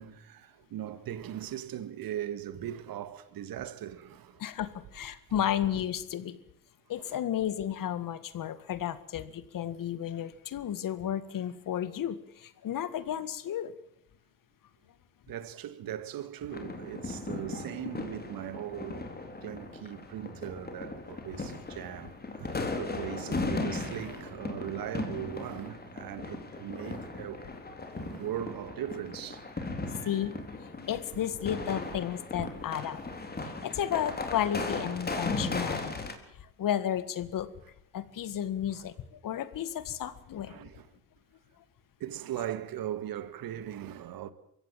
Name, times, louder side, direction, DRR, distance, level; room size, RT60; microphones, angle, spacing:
voice 1, 0.0-4.4 7.0-7.1 15.3-19.1 19.4-27.5 27.9-30.3 32.4-32.5 38.7-38.8 40.5-40.9 42.0-44.3, right 11 dB, 55° right, 1.9 m, -39 dB
voice 2, 4.4-6.4 6.9-13.8 29.9-30.3 30.6-33.0 33.4-36.1 36.3-37.5 37.9-40.6, left 10 dB, 50° left, 1.9 m, -33 dB
sound 1, 16.5-36.1, left 3 dB, 25° left, 3.9 m, -37 dB
23.0 x 16.0 x 7.5 m
supercardioid pair, 80°, 41 cm